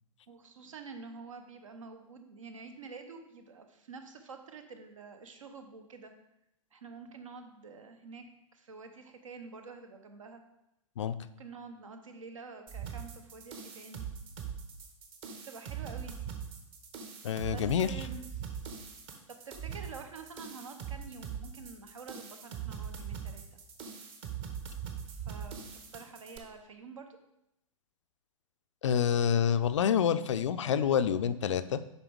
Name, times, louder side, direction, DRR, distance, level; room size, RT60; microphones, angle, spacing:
voice 1, 0.3-6.1 6.7-10.4 11.3-14.1 15.4-16.3 17.4-18.8 19.3-23.4 25.0-25.7 25.9-27.1, right 4 dB, 70° right, 6 dB, 1.0 m, -48 dB
sound 1, 12.7-26.4, right 8 dB, 30° right, 1.1 m, -41 dB
voice 2, 17.2-17.9 28.8-31.8, left 8 dB, 60° left, 13 dB, 0.4 m, -27 dB
8.0 x 5.4 x 3.5 m, 0.85 s
figure-of-eight pair, 105°, 17 cm